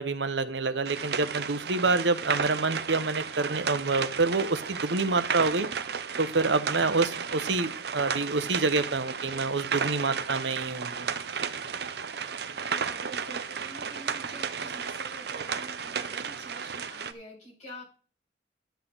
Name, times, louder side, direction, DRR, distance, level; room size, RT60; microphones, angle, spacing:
voice 1, 0.0-5.7 6.2-11.1, right 3 dB, 85° right, 12 dB, 1.0 m, -27 dB
sound 1, 0.9-17.1, right 6 dB, 65° right, 0.7 m, -33 dB
voice 2, 12.2-17.9, equal, 40° left, -4 dB, 6.7 m, -47 dB
11.5 x 8.1 x 4.0 m, 0.40 s
head